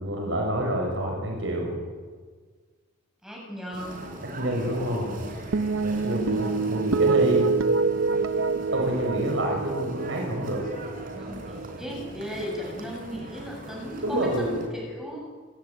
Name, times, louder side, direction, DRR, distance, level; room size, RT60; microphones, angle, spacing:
voice 1, 0.0-1.8 4.4-5.2 5.8-7.5 8.7-10.6 14.0-14.6, right 1 dB, 70° right, 1 dB, 5.6 m, -28 dB
voice 2, 3.2-4.1 6.3-6.5 11.2-11.4 11.8-15.2, equal, ahead, -1 dB, 7.9 m, -36 dB
sound 1, 3.7-14.7, right 1 dB, 45° right, 4.8 m, -40 dB
sound 2, 5.5-12.1, right 4 dB, 85° right, 0.7 m, -27 dB
29.0 x 17.0 x 9.4 m, 1.5 s
head